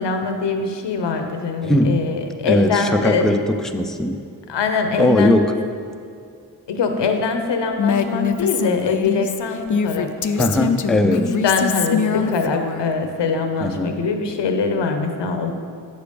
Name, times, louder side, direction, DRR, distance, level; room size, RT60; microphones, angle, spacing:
voice 1, 0.0-3.3 4.5-5.4 6.7-10.1 10.4-10.5 11.0-15.5, left 4 dB, 85° left, 5 dB, 0.9 m, -22 dB
voice 2, 1.7-2.0 2.4-4.2 5.0-5.5 10.4-11.2 13.6-14.0, left 1 dB, ahead, 5 dB, 0.6 m, -19 dB
Female speech woman speaking, 7.8-12.9, left 6 dB, 45° left, 0.6 m, -23 dB
7.9 x 6.7 x 5.2 m, 2.3 s
cardioid pair, 50°, 41 cm